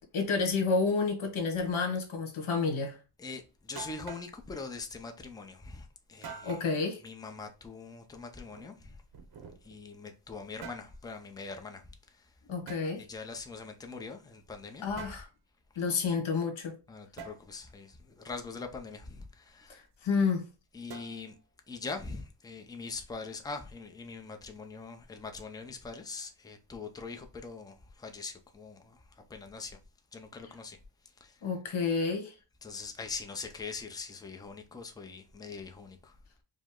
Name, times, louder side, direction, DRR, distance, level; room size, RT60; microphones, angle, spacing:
voice 1, 0.1-3.0 6.3-7.0 12.5-13.1 14.8-15.3 15.7-16.8 19.7-20.5 31.4-32.3, left 4 dB, 75° left, 1.4 m, -30 dB
voice 2, 3.2-6.6 7.0-9.0 9.6-12.3 13.0-14.9 16.9-19.8 20.7-21.4 21.7-29.8 30.1-30.8 31.2-31.4 32.6-36.1, left 4 dB, 10° left, 0.4 m, -43 dB
sound 1, 3.8-4.3 6.2-6.7 8.4-9.8 10.4-10.9 12.7-12.9 15.0-15.3 17.2-17.4 20.9-21.4, right 6 dB, 50° right, 0.7 m, -46 dB
5.1 x 2.0 x 3.6 m
wide cardioid pair, 175°, 48 cm